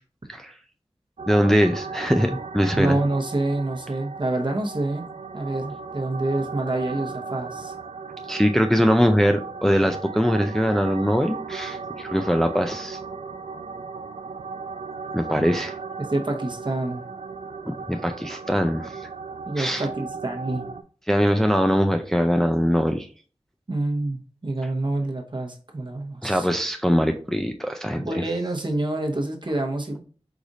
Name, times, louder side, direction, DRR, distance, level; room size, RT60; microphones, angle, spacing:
sound 1, 1.2-20.8, right 5 dB, 70° right, 0.4 m, -36 dB
voice 1, 1.3-3.0 8.3-13.0 15.1-15.7 17.7-19.1 19.6-19.8 21.1-23.1 26.2-28.1, equal, 5° left, 5 dB, 0.4 m, -22 dB
voice 2, 2.7-5.1 5.3-7.7 15.3-15.5 16.0-17.0 19.5-20.7 23.7-26.5 28.0-30.0, right 2 dB, 45° right, 2 dB, 1.0 m, -27 dB
4.9 x 2.6 x 4.0 m, 0.41 s
wide cardioid pair, 50°, 11 cm